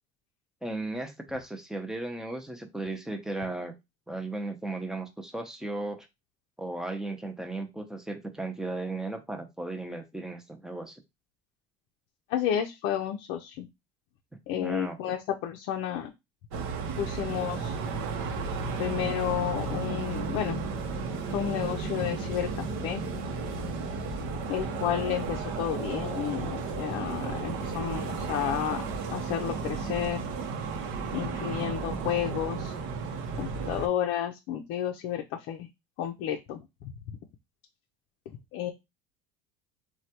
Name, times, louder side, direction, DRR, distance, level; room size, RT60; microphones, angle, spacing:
voice 1, 0.6-3.7 4.1-6.1 6.6-11.0 14.5-15.2, right 2 dB, 5° right, 5 dB, 0.6 m, -36 dB
voice 2, 12.3-13.7 14.5-16.1 17.0-17.8 18.8-20.6 21.3-23.0 24.5-28.8 29.1-30.2 31.1-32.7 33.4-35.7 36.0-36.6 36.8-36.9 38.5-38.7, left 10 dB, 65° left, 3 dB, 0.5 m, -31 dB
sound 1, 16.5-33.9, right 4 dB, 70° right, 0.7 m, -33 dB
3.2 x 2.2 x 2.8 m, 0.22 s
supercardioid pair, 110°, 21 cm